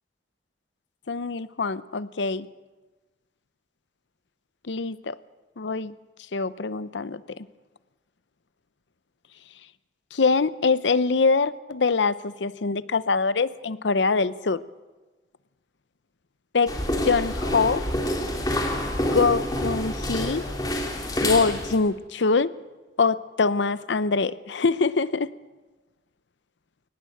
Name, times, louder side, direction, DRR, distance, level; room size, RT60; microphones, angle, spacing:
voice 1, 1.1-2.5 4.6-5.2 5.6-5.9 6.3-7.5 10.1-14.6 16.5-16.7 17.0-17.9 19.1-20.4 21.2-22.5 23.0-25.3, left 4 dB, 85° left, 16 dB, 0.7 m, -24 dB
sound 1, 16.7-21.8, left 1 dB, 20° left, 2.9 m, -27 dB
22.5 x 19.5 x 7.8 m, 1.2 s
head